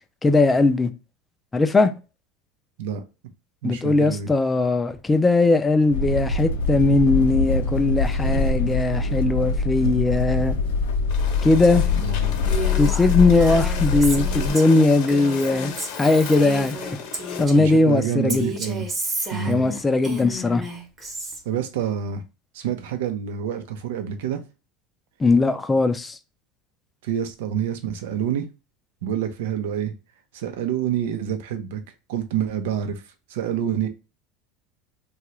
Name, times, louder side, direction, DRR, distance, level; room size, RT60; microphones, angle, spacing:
voice 1, 0.2-0.9 1.5-1.9 3.6-10.6 11.4-11.8 12.8-15.7 16.0-17.0 17.4-18.5 19.5-20.6 25.2-26.2, left 3 dB, 15° left, 0.4 m, -19 dB
voice 2, 3.6-4.3 12.0-12.4 17.6-18.9 19.3-19.6 21.4-22.2 22.5-24.4 27.0-28.5 29.0-29.9 30.3-31.8 32.1-33.0 33.3-33.9, right 9 dB, 80° right, 0.6 m, -27 dB
sound 1, 5.9-14.5, left 4 dB, 85° left, 0.5 m, -23 dB
sound 2, 11.1-17.5, left 6 dB, 65° left, 0.9 m, -35 dB
Female speech woman speaking, 12.4-17.8 18.3-21.4, right 1 dB, 25° right, 1.0 m, -32 dB
2.8 x 2.3 x 3.1 m
supercardioid pair, 120°, 0 cm